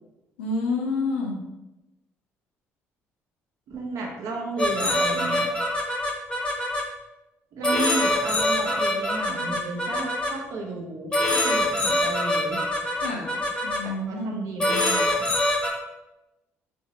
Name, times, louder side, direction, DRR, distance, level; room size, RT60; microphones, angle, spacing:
voice 1, 0.4-1.4 12.9-14.4, left 3 dB, 90° left, 1 dB, 0.4 m, -29 dB
voice 2, 3.7-5.5 7.5-12.6 14.1-15.1, right 2 dB, 65° right, -1 dB, 0.6 m, -33 dB
sound 1, 4.6-6.8 7.6-10.3 11.1-13.8 14.6-15.7, left 1 dB, 15° left, 0.7 m, -24 dB
2.6 x 2.0 x 2.7 m, 0.99 s
hypercardioid pair, 55°, 6 cm